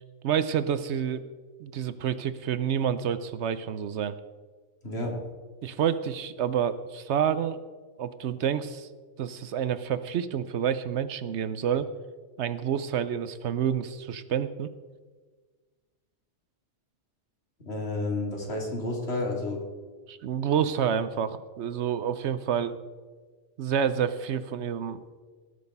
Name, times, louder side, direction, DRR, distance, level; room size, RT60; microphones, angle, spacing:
voice 1, 0.2-1.2 1.6-4.2 5.6-7.6 8.0-8.9 9.2-11.9 12.4-14.7 20.1-22.8 23.6-25.0, right 8 dB, 70° right, 13 dB, 0.9 m, -28 dB
voice 2, 17.7-19.6, left 2 dB, 60° left, -1 dB, 2.7 m, -30 dB
18.5 x 6.6 x 5.3 m, 1.4 s
omnidirectional pair, 1.3 m